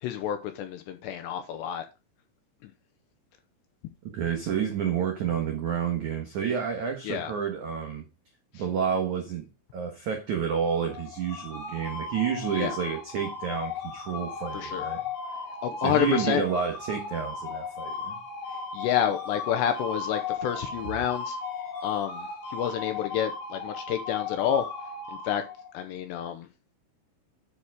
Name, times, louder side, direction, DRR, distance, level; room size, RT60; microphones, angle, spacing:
voice 1, 0.0-1.9 2.6-2.7 7.0-7.3 8.5-8.6 12.5-12.8 14.5-14.9 15.6-16.4 18.5-21.4 21.8-24.7 25.1-25.4 25.7-26.5, left 10 dB, 80° left, 2.7 m, -29 dB
voice 2, 4.0-8.0 8.5-9.4 9.7-15.0 15.8-18.2, right 7 dB, 80° right, 1.7 m, -29 dB
sound 1, 10.5-25.8, left 5 dB, 60° left, 4.1 m, -36 dB
10.0 x 6.1 x 4.9 m
omnidirectional pair, 5.7 m